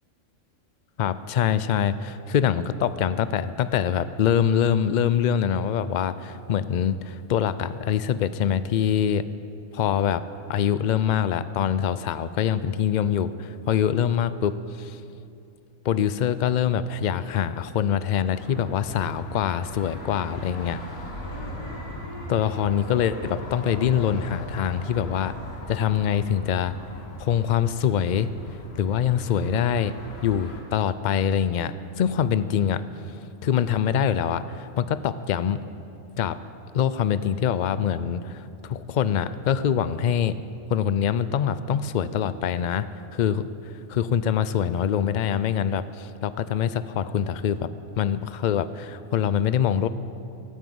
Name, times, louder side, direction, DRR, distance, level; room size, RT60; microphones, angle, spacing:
voice 1, 1.0-9.3 9.7-10.2 10.5-15.0 15.8-20.8 22.3-25.3 25.7-26.7 27.2-28.3 28.8-29.9 30.2-32.8 33.4-35.6 36.2-36.4 36.7-40.4 40.7-42.9 43.1-47.7 48.0-49.9, left 8 dB, 75° left, 14 dB, 0.4 m, -24 dB
sound 1, 18.3-30.6, left 1 dB, 55° left, 1.8 m, -39 dB
sound 2, 21.1-25.8, equal, 20° right, 2.7 m, -43 dB
15.0 x 9.1 x 7.8 m, 2.6 s
omnidirectional pair, 1.3 m